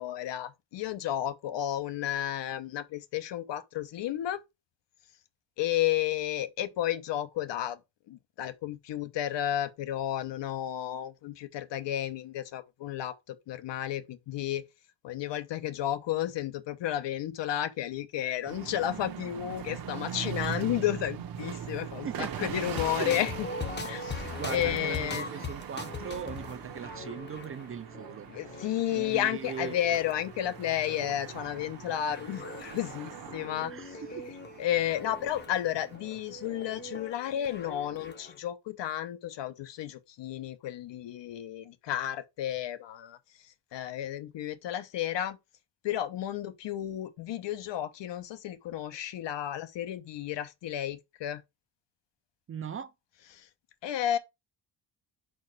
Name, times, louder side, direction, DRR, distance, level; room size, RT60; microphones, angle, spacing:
voice 1, 0.0-4.4 5.6-7.8 8.1-14.6 15.0-23.5 23.8-24.2 24.5-25.3 28.3-34.0 34.6-43.2 43.7-45.4 45.8-51.4 53.3-53.4 53.8-54.2, left 11 dB, 75° left, 0.9 m, -32 dB
sound 1, 18.5-37.1, right 8 dB, 50° right, 0.9 m, -42 dB
voice 2, 22.0-22.4 23.0-23.2 24.3-28.3 28.9-29.7 33.7-34.2 52.5-52.9, right 7 dB, 30° right, 0.4 m, -39 dB
sound 2, 22.7-38.4, left 3 dB, 25° left, 0.7 m, -42 dB
5.4 x 4.5 x 4.6 m
wide cardioid pair, 175°, 44 cm